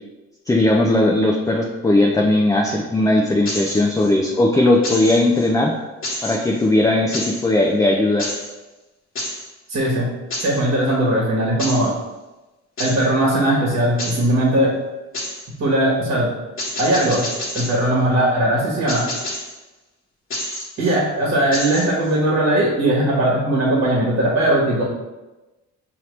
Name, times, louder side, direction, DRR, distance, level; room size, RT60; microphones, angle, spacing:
voice 1, 0.5-5.7 6.2-8.3, left 1 dB, 10° left, -1 dB, 0.4 m, -18 dB
sound 1, 3.5-4.1 4.8-5.5 6.0-6.7 7.1-7.5 8.2-8.5 9.2-9.5 10.3-10.6 11.6-11.9 12.8-13.1 14.0-14.3 15.1-15.5 16.6-17.8 18.9-19.6 20.3-21.0 21.5-22.2, left 1 dB, 45° left, 1.4 m, -29 dB
voice 2, 9.7-10.1 10.4-11.9 12.8-14.8 15.6-16.3 16.8-17.2 17.5-19.1 20.8-24.8, right 1 dB, 50° right, -5 dB, 1.4 m, -19 dB
5.5 x 3.0 x 3.2 m, 1.1 s
cardioid pair, 90°, 30 cm